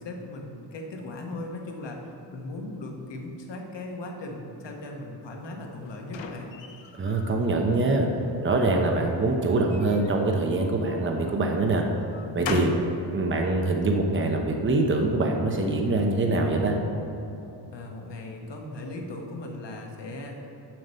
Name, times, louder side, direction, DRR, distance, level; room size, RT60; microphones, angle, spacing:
voice 1, 0.0-6.5 12.4-12.8 17.7-20.5, left 2 dB, 70° left, 1 dB, 1.3 m, -38 dB
sound 1, 5.4-7.4 7.8-8.6 9.5-11.0 11.6-12.9, left 5 dB, 85° left, 0.8 m, -39 dB
voice 2, 7.0-8.1 8.4-11.8 12.3-12.7 13.1-16.8, right 2 dB, 25° right, 2 dB, 0.8 m, -24 dB
7.7 x 6.6 x 5.6 m, 3.0 s
wide cardioid pair, 135°, 44 cm